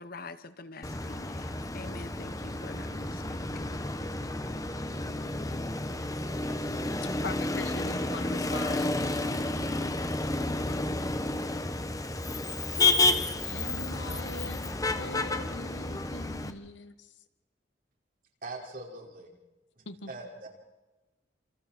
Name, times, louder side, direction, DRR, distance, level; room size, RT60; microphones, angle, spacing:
voice 1, 0.0-3.4, left 3 dB, 55° left, 13 dB, 1.1 m, -45 dB
Motor vehicle (road), 0.8-16.5, left 2 dB, 20° left, 1.3 m, -31 dB
voice 2, 7.2-8.9 13.1-17.2 19.8-20.1, left 3 dB, 80° left, 11 dB, 1.7 m, -42 dB
voice 3, 18.4-19.3 19.8-20.5, right 2 dB, 50° right, 0 dB, 5.4 m, -42 dB
30.0 x 28.0 x 4.5 m, 1.1 s
head